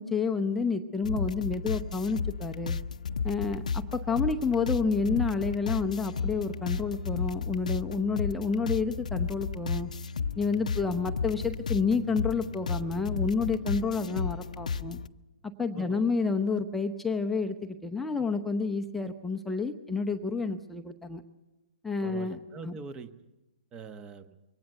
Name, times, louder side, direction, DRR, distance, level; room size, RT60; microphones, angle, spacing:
voice 1, 0.0-2.8 3.2-9.9 10.4-15.0 15.6-21.2 21.8-22.4 22.6-22.8, left 4 dB, 5° left, 4 dB, 0.8 m, -29 dB
sound 1, 1.0-15.1, left 5 dB, 65° left, 0.7 m, -33 dB
voice 2, 22.0-23.1 23.7-24.4, right 5 dB, 20° right, 11 dB, 1.2 m, -43 dB
23.0 x 18.5 x 8.0 m, 1.1 s
figure-of-eight pair, 125°, 4 cm